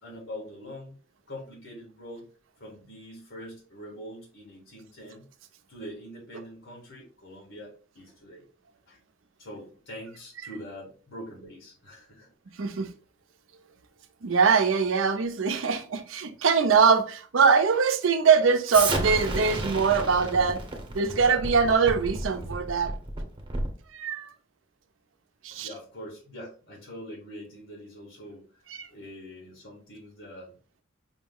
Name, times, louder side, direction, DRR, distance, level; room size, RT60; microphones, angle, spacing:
voice 1, 0.0-1.0 1.3-2.3 2.6-5.3 5.7-8.4 8.9-9.0 9.4-12.3 25.5-28.6 28.9-30.6, equal, 90° left, 1.7 m, -43 dB
voice 2, 12.6-12.9 14.2-20.6 20.9-22.9 23.9-24.3 25.4-25.7 28.8-28.9, right 5 dB, 90° right, 0.6 m, -22 dB
Explosion, 18.7-23.8, right 2 dB, 25° right, 0.8 m, -32 dB
5.0 x 2.1 x 3.6 m
head